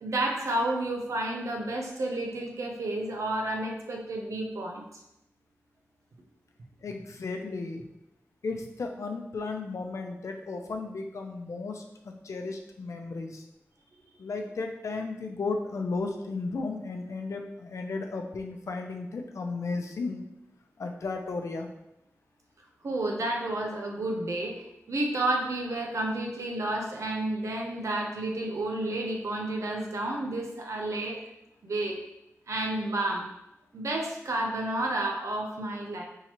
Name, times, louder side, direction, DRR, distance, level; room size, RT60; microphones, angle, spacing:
voice 1, 0.0-4.9 22.8-31.2 31.6-32.0 32.5-33.3 33.7-36.0, right 1 dB, 80° right, 1 dB, 0.8 m, -31 dB
voice 2, 6.8-7.8 8.4-13.4 14.2-20.2 20.8-21.7, left 3 dB, 80° left, 3 dB, 0.6 m, -34 dB
4.3 x 3.7 x 3.0 m, 0.84 s
cardioid pair, 55°, 5 cm